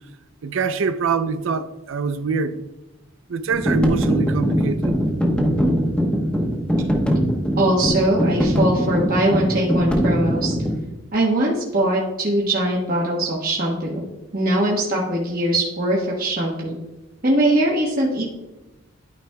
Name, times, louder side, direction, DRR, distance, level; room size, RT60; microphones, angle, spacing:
voice 1, 0.4-2.6 3.3-4.9, right 5 dB, 65° right, 0.5 m, -24 dB
sound 1, 3.5-10.8, equal, 5° left, 0.9 m, -21 dB
voice 2, 7.6-10.6 11.1-14.0 14.3-16.8 17.2-18.2, right 1 dB, 40° right, 1.2 m, -21 dB
12.0 x 5.1 x 2.2 m
head